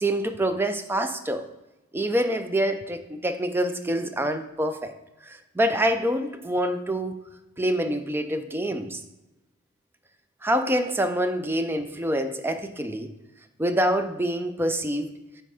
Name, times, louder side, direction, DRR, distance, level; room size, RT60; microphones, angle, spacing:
voice 1, 0.0-1.4 1.9-4.9 5.2-7.2 7.6-9.0 10.4-13.1 13.6-15.1, right 1 dB, 10° right, 8 dB, 0.3 m, -26 dB
8.5 x 3.3 x 4.8 m, 1.0 s
head